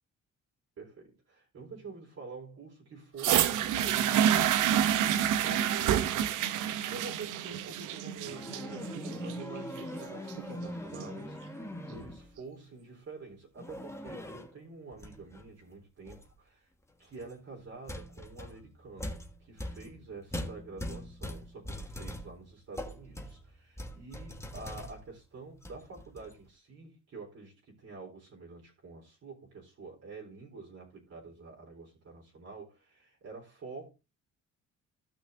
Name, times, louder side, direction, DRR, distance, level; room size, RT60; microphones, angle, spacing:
voice 1, 0.8-6.2 6.7-16.7 17.0-33.9, right 4 dB, 55° right, 3.7 m, -48 dB
sound 1, 3.2-11.2 12.0-12.1, right 10 dB, 85° right, 0.8 m, -28 dB
sound 2, 8.2-12.4 13.6-14.6 14.9-15.4 16.1-16.3 17.2-17.3 17.9-25.2 25.6-26.4, left 1 dB, 10° left, 1.4 m, -42 dB
15.5 x 5.8 x 2.6 m
cardioid pair, 90°, 30 cm